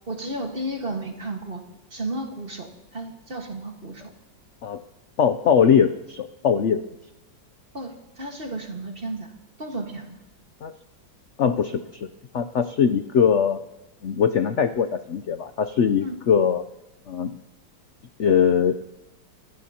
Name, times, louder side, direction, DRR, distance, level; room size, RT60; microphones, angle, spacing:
voice 1, 0.1-1.6 1.9-4.1 7.7-9.3 9.6-10.2 16.0-16.2, right 1 dB, 30° right, 2 dB, 1.7 m, -33 dB
voice 2, 5.2-6.8 10.6-10.7 11.4-12.1 12.3-13.6 14.0-16.6 17.1-17.3 18.2-18.9, left 7 dB, 90° left, 10 dB, 0.6 m, -21 dB
25.0 x 17.0 x 2.9 m, 0.99 s
omnidirectional pair, 2.0 m